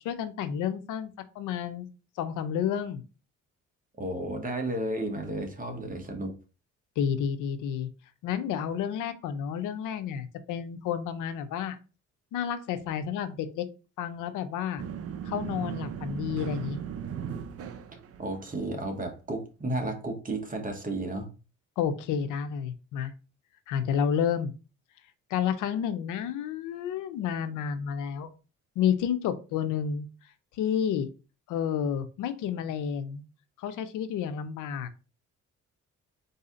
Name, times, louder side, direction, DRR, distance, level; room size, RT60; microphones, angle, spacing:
voice 1, 0.0-1.9 2.2-3.0 7.0-7.9 8.2-11.8 12.3-13.7 14.0-14.8 15.2-16.8 21.8-23.1 23.7-24.5 25.3-28.3 28.8-30.1 30.6-31.1 31.5-33.2 33.6-34.9, left 8 dB, 85° left, 10 dB, 0.6 m, -30 dB
voice 2, 4.0-6.4 18.2-21.3, right 1 dB, 25° right, 4 dB, 1.1 m, -33 dB
sound 1, 14.8-18.7, right 8 dB, 50° right, 0.6 m, -37 dB
4.0 x 2.7 x 3.7 m, 0.33 s
cardioid pair, 90°, 30 cm